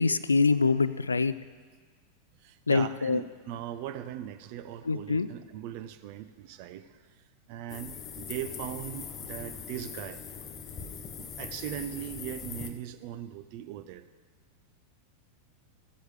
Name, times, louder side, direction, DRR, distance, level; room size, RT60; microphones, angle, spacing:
voice 1, 0.0-1.3 2.7-3.2 4.8-5.3, left 4 dB, 75° left, 15 dB, 0.3 m, -25 dB
voice 2, 2.4-7.1 7.5-10.2 11.2-14.0, right 11 dB, 45° right, 11 dB, 0.6 m, -39 dB
sound 1, 7.7-12.7, left 6 dB, 30° left, 0.8 m, -41 dB
15.0 x 8.0 x 3.3 m, 1.5 s
figure-of-eight pair, 90°, 0 cm